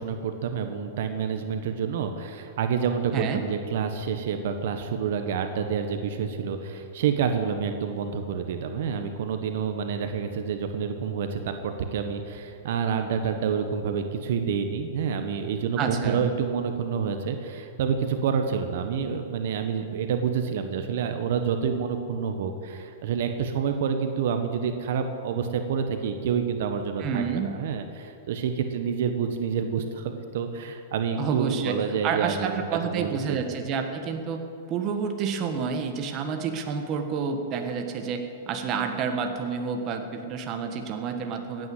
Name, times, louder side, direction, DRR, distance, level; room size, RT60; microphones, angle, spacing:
voice 1, 0.0-33.4, right 6 dB, 65° right, 7 dB, 1.3 m, -28 dB
voice 2, 15.8-16.2 27.0-27.6 31.2-31.8 32.0-34.4 34.7-41.7, right 6 dB, 30° right, 5 dB, 1.4 m, -29 dB
15.5 x 9.4 x 7.9 m, 2.6 s
supercardioid pair, 150°, 0 cm